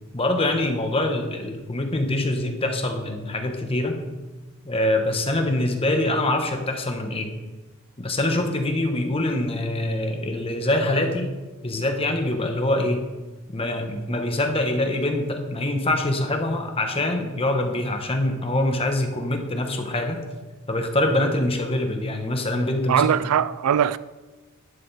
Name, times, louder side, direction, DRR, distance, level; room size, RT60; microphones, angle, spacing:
voice 1, 0.1-4.0 4.6-7.3 8.0-11.3 11.6-13.1 13.5-20.2 20.7-23.1, left 1 dB, 25° left, 1.1 m, -24 dB
voice 2, 22.9-24.0, right 9 dB, 80° right, 0.3 m, -20 dB
11.0 x 6.7 x 4.1 m
head